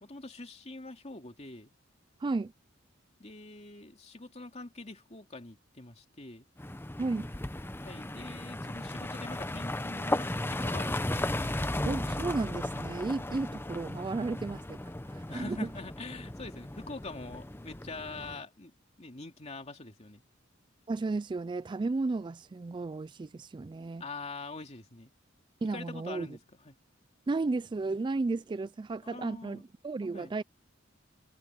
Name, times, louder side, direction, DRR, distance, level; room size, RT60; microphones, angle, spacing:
voice 1, 0.0-1.7 3.2-6.5 7.8-11.2 15.3-18.7 19.0-20.2 24.0-25.1 25.7-26.4 26.6-26.7 29.0-29.6 30.1-30.3, left 3 dB, 35° left, 2.7 m, -44 dB
voice 2, 2.2-2.5 7.0-7.3 11.9-14.8 15.1-15.7 20.9-24.0 25.6-26.3 27.3-30.4, right 3 dB, 25° right, 0.3 m, -33 dB
sound 1, 6.6-18.4, left 1 dB, 10° left, 0.8 m, -35 dB
head